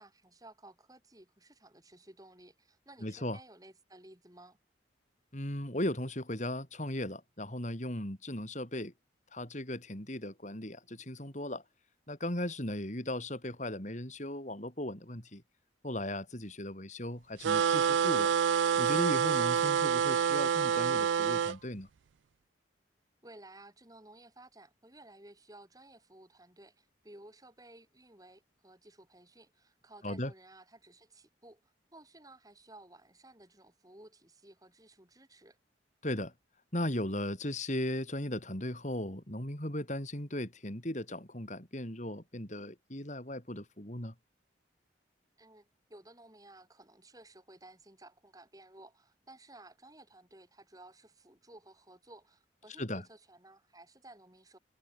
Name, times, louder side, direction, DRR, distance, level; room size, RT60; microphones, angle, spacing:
voice 1, 0.0-4.6 23.2-35.6 45.4-54.6, right 1 dB, 20° right, 7.2 m, -56 dB
voice 2, 3.0-3.4 5.3-8.9 9.3-11.6 12.1-15.4 15.8-18.3 18.8-21.9 30.0-30.3 36.0-36.3 36.7-44.1 52.8-53.0, left 1 dB, 40° left, 4.3 m, -37 dB
sound 1, 17.4-21.6, right 7 dB, 80° right, 0.4 m, -27 dB
head